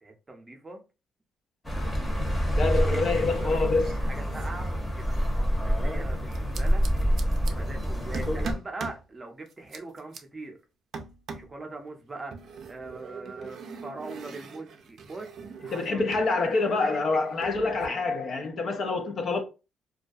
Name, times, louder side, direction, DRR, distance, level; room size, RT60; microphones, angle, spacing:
voice 1, 0.0-0.8 2.6-2.9 3.2-3.7 4.0-6.8 7.5-10.6 11.3-12.3 12.7-15.3 15.6-16.0 16.5-17.0 17.6-18.0, right 2 dB, 25° right, 0.6 m, -41 dB
Accelerating revving vroom, 1.6-8.5, equal, 15° left, 0.8 m, -27 dB
sound 1, 1.9-2.4 2.7-5.3 6.3-7.5 8.1-9.0 9.5-10.2 10.9-11.6 12.3-16.3 16.6-17.9, right 4 dB, 65° right, 0.4 m, -42 dB
voice 2, 2.5-3.9 15.7-19.4, left 3 dB, 55° left, 0.5 m, -26 dB
2.3 x 2.1 x 2.5 m
cardioid pair, 90°, 0 cm